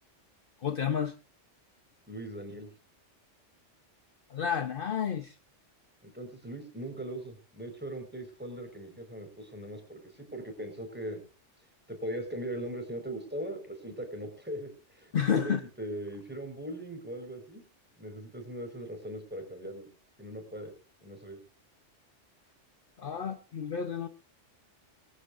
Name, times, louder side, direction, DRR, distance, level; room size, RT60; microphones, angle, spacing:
voice 1, 0.6-1.1 4.3-5.3 15.1-15.6 23.0-24.1, left 7 dB, 50° left, 1.0 m, -30 dB
voice 2, 2.1-2.7 6.0-11.2 11.9-17.6 18.0-19.9 20.2-20.7 21.0-21.4, right 1 dB, 10° right, 4.7 m, -40 dB
21.5 x 15.0 x 2.5 m
omnidirectional pair, 1.3 m